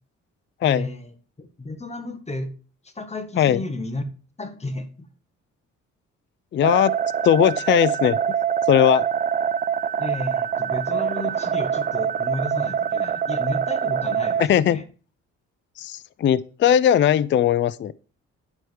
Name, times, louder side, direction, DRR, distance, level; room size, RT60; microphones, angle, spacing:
voice 1, 0.6-2.5 2.8-4.0 4.4-5.1 10.0-14.8, left 2 dB, 20° left, 1.6 m, -33 dB
voice 2, 6.5-7.0 7.2-8.2 8.7-9.1 14.4-14.8 15.8-17.9, left 10 dB, 40° left, 0.4 m, -19 dB
sound 1, 6.6-14.5, right 8 dB, 30° right, 0.4 m, -24 dB
10.5 x 4.7 x 4.7 m
cardioid pair, 90°, 30 cm